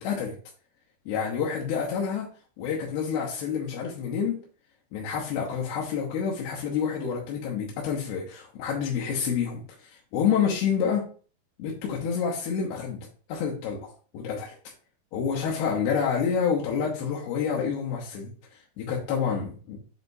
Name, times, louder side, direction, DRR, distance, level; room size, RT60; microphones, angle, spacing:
voice 1, 0.0-0.3 1.1-2.3 2.6-4.4 4.9-11.1 11.6-14.6 15.1-18.3 18.8-19.8, left 7 dB, 75° left, -3 dB, 2.5 m, -28 dB
7.1 x 5.0 x 2.7 m, 0.40 s
omnidirectional pair, 5.9 m